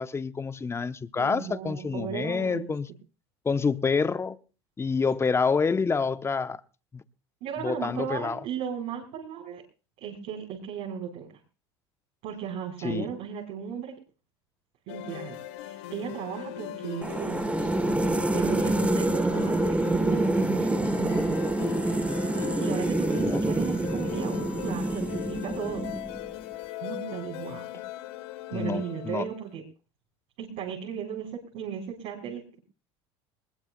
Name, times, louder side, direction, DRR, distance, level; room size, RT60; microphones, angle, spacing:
voice 1, 0.0-2.9 3.4-4.4 4.8-6.6 6.9-7.0 7.6-8.4 12.8-13.1 23.2-23.4 28.5-29.3, left 5 dB, 20° left, 0.8 m, -27 dB
voice 2, 1.2-2.7 7.4-9.6 10.0-11.3 12.2-13.9 14.9-17.7 18.3-21.4 22.6-25.9 26.8-27.7 28.5-29.6 30.4-32.6, right 8 dB, 65° right, 4.2 m, -36 dB
sound 1, 14.9-29.4, left 15 dB, 75° left, 1.2 m, -39 dB
sound 2, 17.0-26.3, right 2 dB, 10° right, 0.9 m, -27 dB
21.0 x 20.0 x 2.2 m
hypercardioid pair, 85°, 14 cm